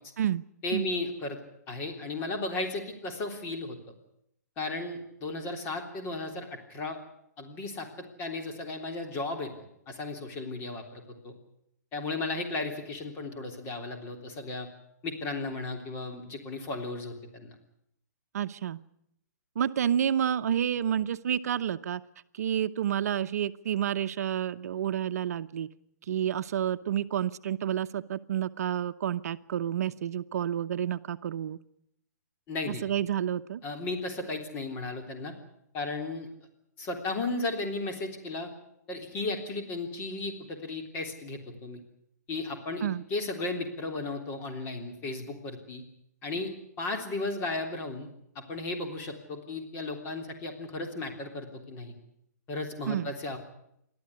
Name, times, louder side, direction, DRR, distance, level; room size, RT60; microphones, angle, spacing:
voice 1, 0.6-1.4 1.7-3.8 4.6-7.0 7.4-9.5 9.9-11.3 11.9-14.7 15.0-17.6 32.5-32.8 33.6-35.3 35.7-36.3 36.8-38.5 38.9-41.8 42.3-45.8 46.2-46.5 46.8-48.1 48.4-51.9 52.5-53.4, left 2 dB, 25° left, 3 dB, 3.4 m, -35 dB
voice 2, 18.3-18.8 19.6-22.0 22.3-25.7 26.1-31.6 32.7-33.6 42.8-43.0 52.9-53.1, right 10 dB, 60° right, 11 dB, 0.8 m, -29 dB
28.5 x 12.5 x 9.7 m, 0.77 s
hypercardioid pair, 155°, 9 cm